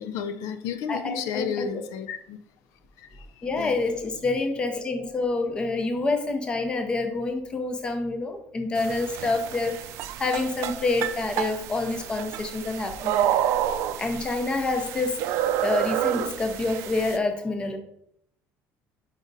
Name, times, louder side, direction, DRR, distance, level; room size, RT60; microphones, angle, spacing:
voice 1, 0.0-2.4 3.0-3.7, left 7 dB, 70° left, 10 dB, 0.4 m, -32 dB
voice 2, 0.9-1.8 3.4-9.8 10.2-13.3 14.0-17.8, left 3 dB, 15° left, 6 dB, 0.6 m, -27 dB
sound 1, 8.8-17.2, right 11 dB, 60° right, 0.4 m, -29 dB
5.2 x 4.9 x 4.0 m, 0.72 s
cardioid pair, 180°, 5 cm